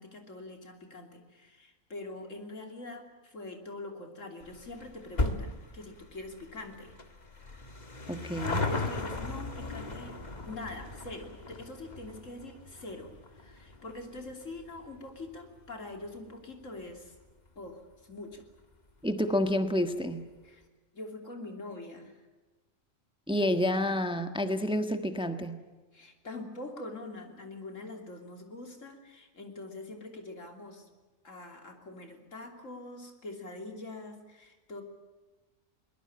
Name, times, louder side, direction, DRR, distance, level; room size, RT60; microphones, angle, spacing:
voice 1, 0.0-6.9 8.7-10.2 10.4-17.1 17.5-18.4 20.4-20.6 20.9-22.3 25.9-30.9 31.2-34.8, left 2 dB, 70° left, 4 dB, 3.4 m, -44 dB
sound 1, 4.4-17.2 17.5-17.6 18.4-18.5 18.7-18.8 19.1-19.2, left 2 dB, 35° left, 1.8 m, -38 dB
voice 2, 8.1-8.6 19.0-20.2 23.3-25.6, left 1 dB, 5° right, 8 dB, 1.3 m, -29 dB
23.0 x 20.0 x 8.8 m, 1.2 s
omnidirectional pair, 1.4 m